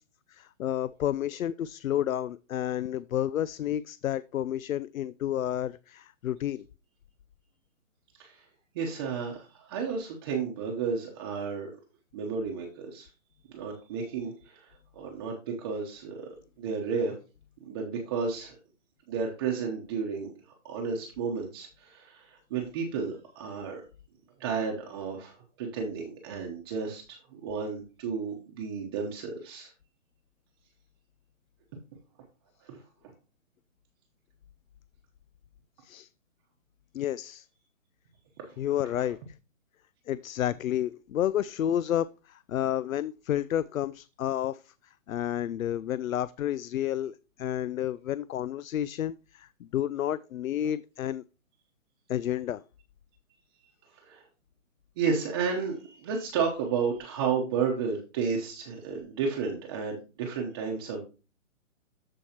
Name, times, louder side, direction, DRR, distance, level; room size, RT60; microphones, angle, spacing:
voice 1, 0.3-6.6 35.8-36.1 36.9-37.5 38.6-39.2 40.1-44.7 45.1-51.2 52.1-52.6, left 11 dB, 90° left, 0.5 m, -30 dB
voice 2, 8.7-11.7 12.1-13.1 13.5-16.3 16.6-17.2 17.7-18.6 19.1-20.3 20.6-23.8 24.4-29.7 32.6-32.8 38.4-38.6 54.0-54.2 55.0-61.0, right 5 dB, 20° right, 0.9 m, -32 dB
14.0 x 4.6 x 2.9 m
hypercardioid pair, 160°, 40 cm